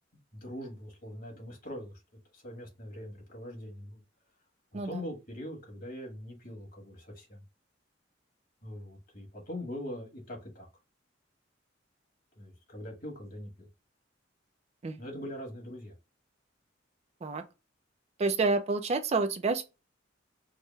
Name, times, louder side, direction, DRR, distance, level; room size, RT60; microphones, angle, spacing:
voice 1, 0.3-2.0 2.3-4.0 4.7-7.4 8.6-10.7 12.4-13.7 15.0-15.9, left 1 dB, 50° left, 1.6 m, -42 dB
voice 2, 18.2-19.6, right 3 dB, 35° right, 0.4 m, -28 dB
4.8 x 2.1 x 3.2 m
head